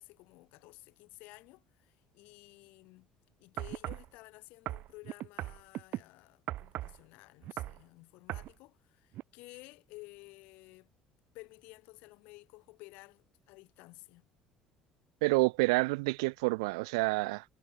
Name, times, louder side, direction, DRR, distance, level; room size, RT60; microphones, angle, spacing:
voice 1, 0.0-3.1 3.4-10.9 11.3-14.3, left 23 dB, 70° left, 2.3 m, -54 dB
sound 1, 3.6-4.1 4.7-6.0 6.5-7.0 7.4-7.8 8.3-8.5 9.1-9.2, right 15 dB, 60° right, 1.1 m, -38 dB
voice 2, 15.2-17.4, right 26 dB, 75° right, 0.4 m, -28 dB
hypercardioid pair, 60°, 3 cm